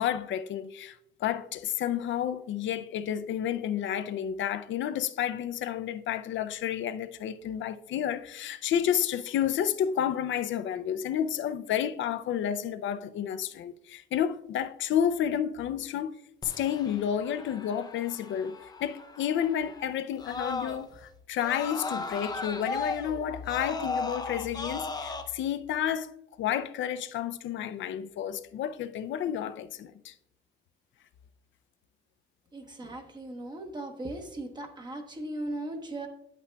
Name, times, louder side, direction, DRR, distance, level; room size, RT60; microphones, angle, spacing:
voice 1, 0.0-16.1 16.4-26.1 26.4-30.1, left 9 dB, 75° left, 0.4 m, -31 dB
Screaming, 16.4-21.0 21.4-25.2, left 3 dB, 20° left, 0.5 m, -37 dB
voice 2, 32.5-36.1, right 1 dB, 20° right, 0.9 m, -38 dB
9.4 x 8.3 x 2.2 m
wide cardioid pair, 175°, 20 cm